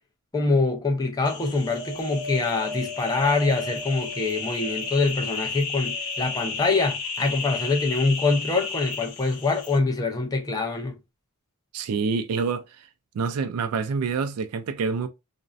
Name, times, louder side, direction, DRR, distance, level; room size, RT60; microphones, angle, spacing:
voice 1, 0.3-11.0, left 3 dB, 15° left, 0.4 m, -24 dB
sound 1, 1.2-9.8, left 5 dB, 90° left, 0.7 m, -33 dB
Wind, 1.7-5.2 5.8-6.8 7.6-7.7, equal, 60° left, 1.0 m, -37 dB
voice 2, 11.7-12.6 13.1-15.1, right 5 dB, 75° right, 0.4 m, -26 dB
2.5 x 2.1 x 2.3 m
head